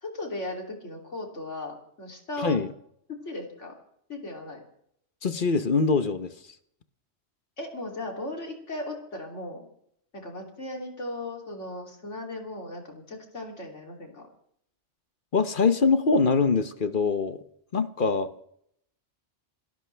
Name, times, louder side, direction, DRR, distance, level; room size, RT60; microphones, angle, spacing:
voice 1, 0.0-2.6 3.1-3.7 4.1-4.6 7.6-9.6 10.1-14.3, left 1 dB, 75° left, 1 dB, 3.4 m, -37 dB
voice 2, 2.4-2.7 5.2-6.3 15.3-17.4 17.7-18.3, left 4 dB, 45° left, 11 dB, 1.1 m, -23 dB
27.5 x 13.0 x 3.4 m, 0.70 s
omnidirectional pair, 1.3 m